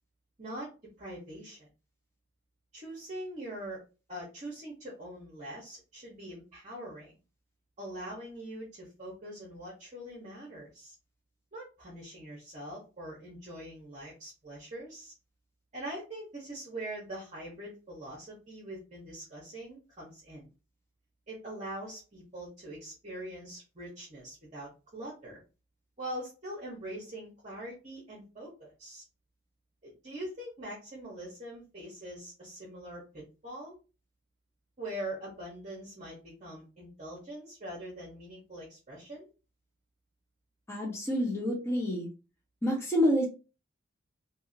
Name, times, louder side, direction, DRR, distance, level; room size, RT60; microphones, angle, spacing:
voice 1, 0.4-0.7 1.0-1.7 2.7-3.8 4.1-7.1 7.8-10.9 11.5-15.1 15.7-20.5 21.3-25.4 26.0-29.0 29.8-33.7 34.8-39.3, right 1 dB, 35° right, -5 dB, 0.9 m, -43 dB
voice 2, 40.7-42.1 42.6-43.2, equal, 15° left, -3 dB, 0.8 m, -28 dB
2.8 x 2.7 x 2.6 m, 0.32 s
head